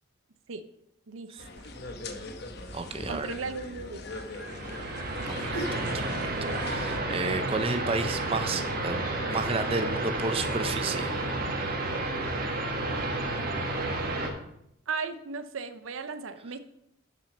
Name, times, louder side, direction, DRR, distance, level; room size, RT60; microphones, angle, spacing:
voice 1, 1.1-1.7 3.1-4.0 13.8-13.9 14.9-16.6, right 4 dB, 75° right, 11 dB, 0.6 m, -36 dB
sound 1, 1.4-7.0, left 1 dB, 55° left, 1.0 m, -40 dB
voice 2, 2.7-3.3 5.3-6.3 6.6-9.0 9.3-11.2, right 3 dB, 30° right, 8 dB, 0.6 m, -32 dB
sound 2, 4.3-14.3, right 2 dB, 45° right, 1.4 m, -31 dB
6.8 x 6.3 x 6.5 m, 0.78 s
head